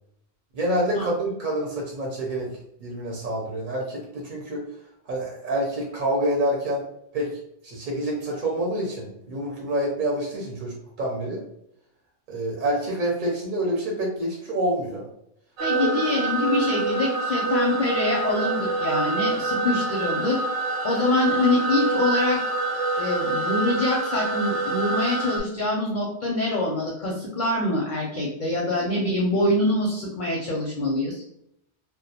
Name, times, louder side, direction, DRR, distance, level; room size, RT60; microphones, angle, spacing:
voice 1, 0.5-2.5 2.8-4.6 5.1-6.8 7.1-7.3 7.6-11.4 12.3-15.0 15.7-15.9, right 1 dB, 55° right, -2 dB, 0.7 m, -27 dB
voice 2, 15.6-20.4 20.8-22.4 23.0-31.2, left 2 dB, 60° left, -2 dB, 0.5 m, -25 dB
sound 1, 15.6-25.4, right 3 dB, 90° right, 0.9 m, -26 dB
2.2 x 2.1 x 2.7 m, 0.75 s
omnidirectional pair, 1.1 m